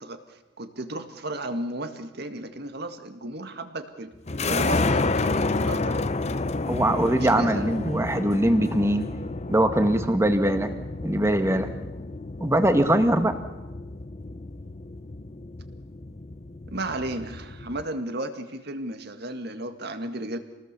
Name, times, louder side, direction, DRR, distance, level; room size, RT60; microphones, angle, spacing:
voice 1, 0.0-4.1 4.5-6.1 7.1-7.7 16.7-20.4, right 1 dB, 55° right, 8 dB, 2.0 m, -34 dB
sound 1, 4.3-17.8, left 3 dB, 35° left, 0.8 m, -30 dB
voice 2, 6.7-9.1 9.5-10.7 11.0-11.7 12.4-13.3, right 1 dB, 15° right, 8 dB, 1.6 m, -22 dB
27.5 x 19.5 x 6.9 m, 1.1 s
head